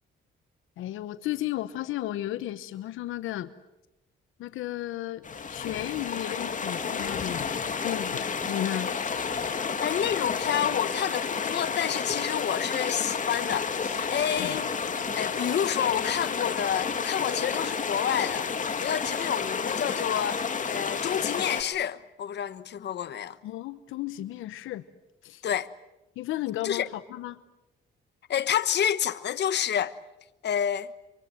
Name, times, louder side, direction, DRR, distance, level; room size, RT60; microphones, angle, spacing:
voice 1, 0.8-3.5 4.4-5.2 5.5-7.5 7.8-8.9 14.4-14.6 23.4-24.8 25.2-25.5 26.2-27.4, left 14 dB, 85° left, 1.0 m, -34 dB
sound 1, 5.2-21.6, left 5 dB, 40° left, 2.6 m, -31 dB
voice 2, 9.8-14.7 15.2-18.5 18.8-23.4 25.4-25.7 26.6-26.9 28.3-30.0 30.4-30.9, left 9 dB, 60° left, 1.2 m, -29 dB
26.5 x 24.5 x 7.7 m
cardioid pair, 90°, 20 cm